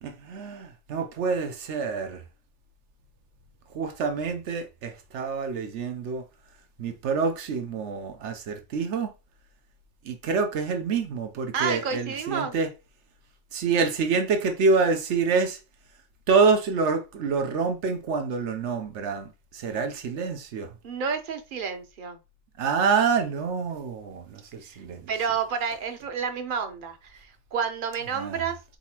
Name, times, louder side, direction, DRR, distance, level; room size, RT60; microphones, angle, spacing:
voice 1, 0.0-2.2 3.7-6.2 6.8-9.1 10.0-12.7 13.5-15.6 16.3-20.7 22.6-25.1 28.1-28.4, right 5 dB, 85° right, 1.1 m, -27 dB
voice 2, 11.5-12.5 20.8-22.2 24.7-24.8 25.1-28.8, right 6 dB, 50° right, 0.9 m, -30 dB
4.2 x 4.0 x 2.9 m
omnidirectional pair, 1.2 m